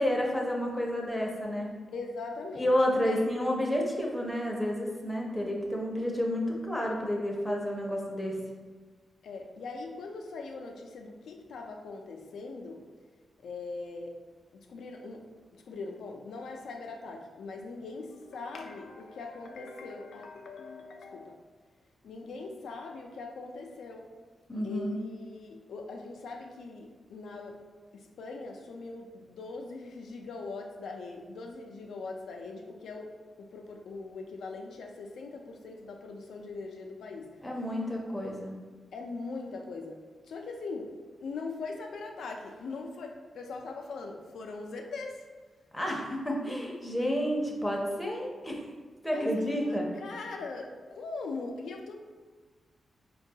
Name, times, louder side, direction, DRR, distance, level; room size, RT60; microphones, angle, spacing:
voice 1, 0.0-1.7 2.6-8.4 24.5-25.0 37.4-38.6 45.7-48.6 49.0-49.9, equal, 5° left, -2 dB, 0.5 m, -30 dB
voice 2, 1.9-3.2 9.2-12.8 13.4-14.1 14.5-15.3 15.6-21.4 22.0-24.1 24.6-27.6 27.9-37.4 38.9-40.0 40.2-40.9 41.2-45.2 49.1-51.9, left 3 dB, 85° left, 2 dB, 0.3 m, -41 dB
4.4 x 2.2 x 2.7 m, 1.4 s
wide cardioid pair, 125°, 0 cm